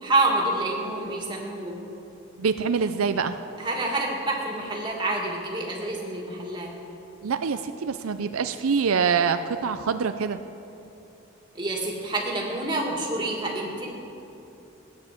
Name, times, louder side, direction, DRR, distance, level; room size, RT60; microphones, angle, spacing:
voice 1, 0.0-1.8 3.6-6.7 11.5-13.9, right 2 dB, 20° right, -1 dB, 2.3 m, -27 dB
voice 2, 2.4-3.4 7.2-10.4, right 6 dB, 85° right, 9 dB, 0.5 m, -25 dB
16.5 x 9.6 x 7.6 m, 2.9 s
head